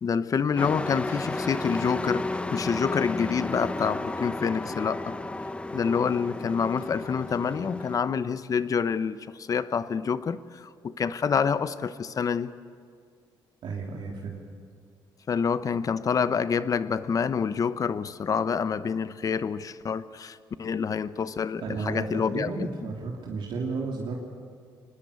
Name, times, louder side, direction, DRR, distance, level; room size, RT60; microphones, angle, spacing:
voice 1, 0.0-5.1 5.7-12.5 15.3-22.7, left 6 dB, 45° left, 14 dB, 0.9 m, -27 dB
Truck, 0.6-8.0, left 2 dB, 15° left, 0.8 m, -33 dB
voice 2, 13.6-14.4 21.6-24.2, right 4 dB, 70° right, -1 dB, 3.0 m, -33 dB
24.0 x 20.0 x 8.4 m, 2.1 s
cardioid pair, 115°, 9 cm